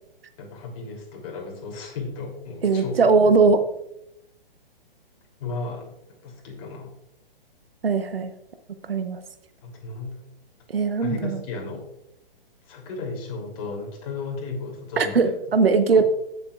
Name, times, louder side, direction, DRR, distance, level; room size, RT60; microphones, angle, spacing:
voice 1, 0.4-3.4 5.4-5.9 6.2-6.9 9.6-10.2 11.0-11.8 12.6-15.6 15.9-16.0, left 3 dB, 35° left, 1 dB, 3.0 m, -34 dB
voice 2, 2.6-3.6 7.8-8.3 8.8-9.2 10.7-11.4 15.0-16.0, right 4 dB, 75° right, 9 dB, 0.9 m, -20 dB
15.5 x 7.6 x 2.4 m, 0.83 s
figure-of-eight pair, 125°, 29 cm